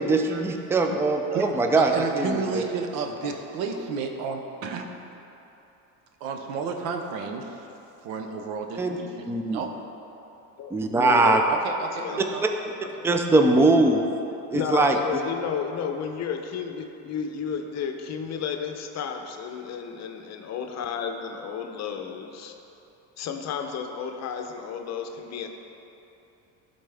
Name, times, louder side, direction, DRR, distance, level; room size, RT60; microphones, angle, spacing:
voice 1, 0.0-2.6 8.8-9.0 9.2-9.6 10.7-11.4 12.4-12.5 13.0-14.1 14.5-15.0, right 2 dB, 5° right, 4 dB, 0.4 m, -21 dB
voice 2, 1.8-4.8 6.2-7.6 8.0-9.7 11.5-12.5, right 5 dB, 80° right, 4 dB, 0.9 m, -32 dB
voice 3, 11.0-11.4 12.0-12.2 14.5-22.5 23.2-25.5, left 7 dB, 45° left, 5 dB, 0.7 m, -32 dB
12.0 x 4.1 x 3.4 m, 2.9 s
supercardioid pair, 105°, 36 cm